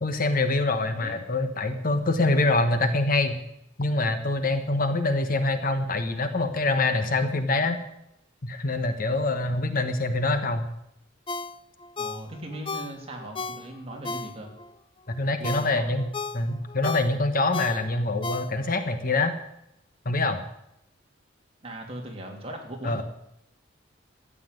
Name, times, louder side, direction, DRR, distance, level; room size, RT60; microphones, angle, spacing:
voice 1, 0.0-3.4 3.8-7.8 8.4-10.7 15.1-16.1 16.3-19.4 20.0-20.4 22.8-23.0, left 2 dB, 45° left, 8 dB, 1.2 m, -25 dB
Ringtone, 11.3-14.7 15.1-18.9 19.3-19.4, left 3 dB, 25° left, 0.6 m, -35 dB
voice 2, 12.0-14.5 15.2-15.9 21.6-23.0, right 1 dB, 30° right, 1 dB, 3.0 m, -39 dB
13.5 x 8.7 x 9.2 m, 0.80 s
head